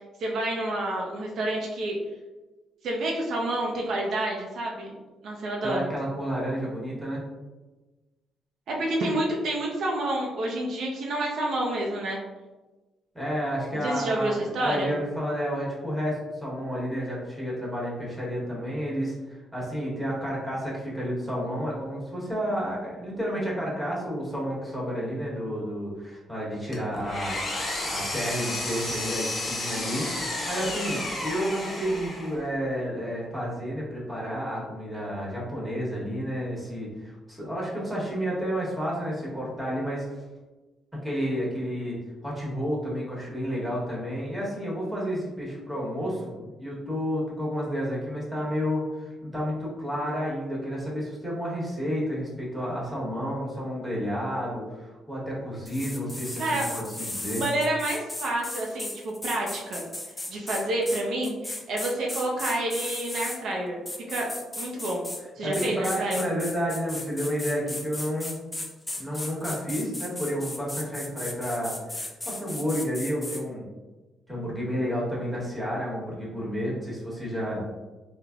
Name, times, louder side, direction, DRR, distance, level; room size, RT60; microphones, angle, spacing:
voice 1, 0.2-2.0 2.8-5.0 5.2-5.9 8.7-12.2 13.8-14.9 56.4-56.6 57.4-59.8 60.3-63.8 64.1-64.3 64.6-65.1 65.4-66.2, right 1 dB, 70° right, -2 dB, 0.4 m, -28 dB
voice 2, 5.6-7.2 13.1-30.1 30.5-40.2 41.0-42.0 42.2-57.4 65.4-68.4 69.0-73.7 74.3-77.6, equal, 10° right, -5 dB, 1.1 m, -31 dB
Engine, 26.7-32.4, left 1 dB, 35° left, 0.8 m, -32 dB
sound 1, 55.7-63.4 63.9-65.2 65.5-73.4, left 1 dB, 15° left, 0.4 m, -36 dB
3.2 x 2.1 x 2.4 m, 1.2 s
cardioid pair, 90°, 0 cm